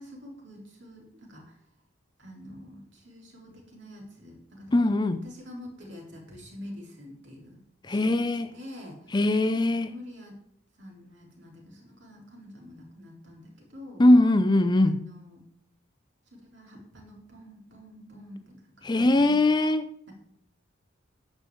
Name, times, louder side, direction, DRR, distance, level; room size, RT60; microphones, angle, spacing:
voice 1, 0.0-1.5 2.2-4.7 5.2-7.6 7.9-9.4 9.8-10.4 10.8-14.0 14.8-15.4 16.3-19.4, left 1 dB, 60° right, 3.8 m, -46 dB
voice 2, 4.7-5.2 7.9-8.5 9.1-10.0 14.0-15.1 18.8-19.9, left 1 dB, 20° left, 0.4 m, -21 dB
11.0 x 5.3 x 7.6 m
head